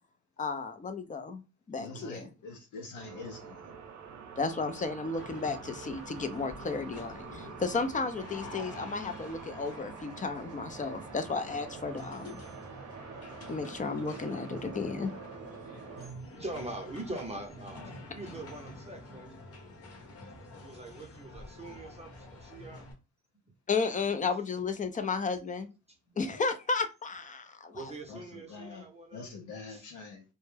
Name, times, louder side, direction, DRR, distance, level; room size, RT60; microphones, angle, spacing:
voice 1, 0.4-1.4 1.7-2.3 4.4-12.4 13.5-15.1 23.7-25.7 26.2-27.9, left 4 dB, 25° left, 0.5 m, -33 dB
voice 2, 1.8-3.7 28.1-28.8 29.1-30.2, left 4 dB, 75° left, 0.6 m, -45 dB
sound 1, 2.9-16.1, right 6 dB, 70° right, 0.7 m, -46 dB
sound 2, 5.2-22.9, left 2 dB, 50° left, 0.9 m, -48 dB
voice 3, 15.9-19.5 20.6-22.9 27.7-29.3 29.7-29.9, right 2 dB, 20° right, 0.7 m, -43 dB
2.2 x 2.1 x 3.2 m
cardioid pair, 90°, 30 cm